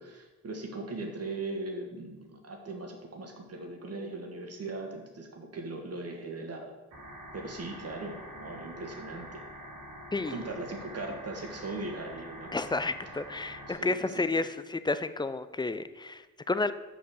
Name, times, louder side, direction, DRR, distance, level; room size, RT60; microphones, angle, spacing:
voice 1, 0.0-6.7 7.3-9.4 10.2-12.6 13.7-14.4, right 2 dB, 40° right, 2 dB, 2.1 m, -39 dB
sound 1, 6.9-13.7, equal, 80° right, 2.7 m, -46 dB
voice 2, 12.5-16.7, left 3 dB, 10° left, 13 dB, 0.6 m, -31 dB
7.4 x 5.4 x 6.5 m, 1.2 s
hypercardioid pair, 40°, 38 cm